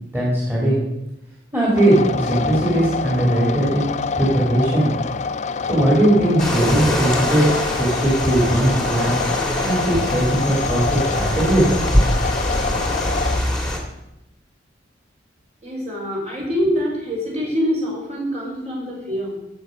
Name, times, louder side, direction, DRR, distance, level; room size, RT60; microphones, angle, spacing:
voice 1, 0.1-0.8 1.5-3.9 4.2-4.9 5.6-7.5 7.8-9.2 9.6-11.7, right 1 dB, 15° right, -6 dB, 3.1 m, -19 dB
sound 1, 1.7-13.4, left 5 dB, 40° left, 0.4 m, -27 dB
sound 2, 6.4-13.8, left 1 dB, 5° left, 1.9 m, -23 dB
voice 2, 15.6-19.4, equal, 40° right, -3 dB, 4.7 m, -24 dB
15.5 x 6.9 x 5.3 m, 0.89 s
head